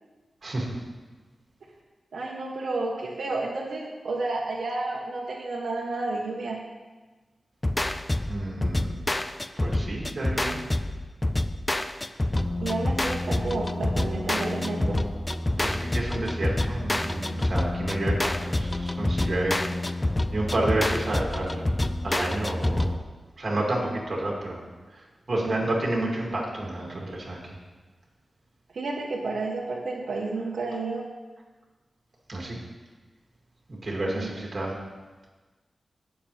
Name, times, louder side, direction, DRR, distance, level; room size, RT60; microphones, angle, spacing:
voice 1, 0.4-0.8 8.1-9.0 9.6-10.6 15.6-19.6 20.3-21.6 22.0-23.0 23.4-24.6 25.3-27.4 32.3-32.6 33.7-34.8, right 1 dB, 40° right, -2 dB, 2.6 m, -30 dB
voice 2, 2.1-6.6 12.6-15.1 25.3-25.6 28.7-31.1 34.1-34.3, right 3 dB, 85° right, -2 dB, 1.3 m, -31 dB
sound 1, 7.6-23.0, left 1 dB, 15° left, 0.4 m, -27 dB
18.5 x 7.0 x 3.5 m, 1.3 s
wide cardioid pair, 130°, 0 cm